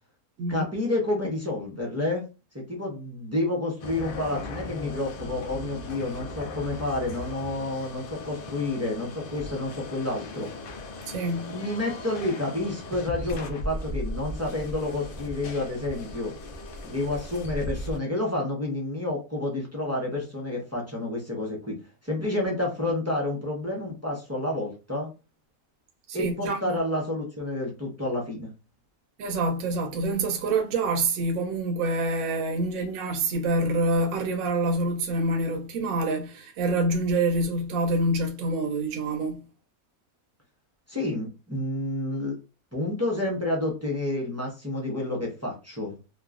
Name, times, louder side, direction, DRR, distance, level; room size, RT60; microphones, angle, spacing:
voice 1, 0.5-2.2 2.5-10.5 11.4-16.3 16.8-21.8 22.0-25.1 26.1-28.5 40.9-42.4 42.7-46.0, left 2 dB, 20° right, 0.4 m, -29 dB
sound 1, 3.8-18.0, left 2 dB, 70° left, 0.5 m, -37 dB
voice 2, 11.1-11.5 26.1-26.8 29.2-39.4, right 2 dB, 75° right, 1.0 m, -26 dB
3.0 x 2.2 x 2.4 m
omnidirectional pair, 1.5 m